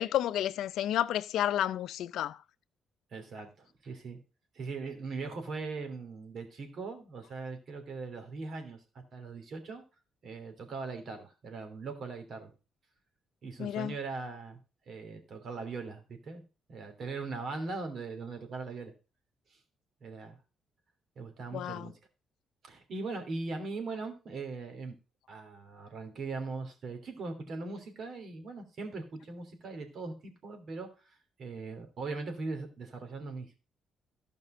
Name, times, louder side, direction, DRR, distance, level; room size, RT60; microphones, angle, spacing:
voice 1, 0.0-2.4 13.6-13.9 21.5-21.9, left 11 dB, 80° left, 0.5 m, -31 dB
voice 2, 3.1-4.2 4.5-8.8 9.1-9.8 10.2-12.5 13.4-14.6 14.9-16.4 16.7-18.9 19.5-19.6 20.0-20.4 21.2-21.9 22.6-24.9 25.3-30.9 31.4-33.6, right 3 dB, 55° right, 3.0 m, -40 dB
13.0 x 5.3 x 5.0 m
cardioid pair, 90°, 0 cm